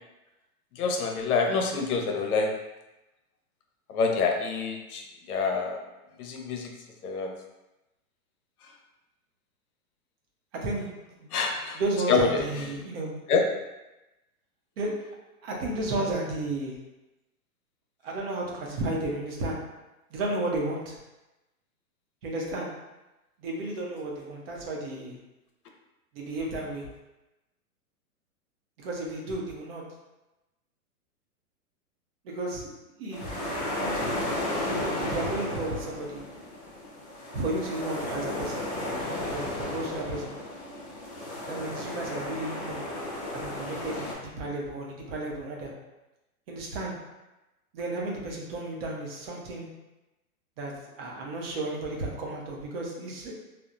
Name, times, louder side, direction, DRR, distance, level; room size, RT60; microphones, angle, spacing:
voice 1, 0.8-2.5 3.9-5.8 6.2-6.7 7.0-7.3 11.3-11.8 12.1-12.5 13.3-13.4, left 4 dB, 70° left, 2 dB, 0.7 m, -26 dB
voice 2, 10.5-11.3 11.7-13.1 14.8-14.9 15.4-16.7 18.0-19.6 20.1-21.0 22.2-22.7 23.4-25.2 26.1-26.9 28.8-29.8 32.2-32.7 33.0-34.2 34.6-36.2 37.3-40.3 41.5-42.8 43.3-45.7 46.5-47.0 47.7-49.7 50.6-53.3, right 2 dB, 40° right, -2 dB, 0.6 m, -33 dB
sound 1, 33.1-44.1, left 1 dB, 30° left, 0.4 m, -34 dB
2.9 x 2.0 x 2.4 m, 1.0 s
hypercardioid pair, 135°, 45 cm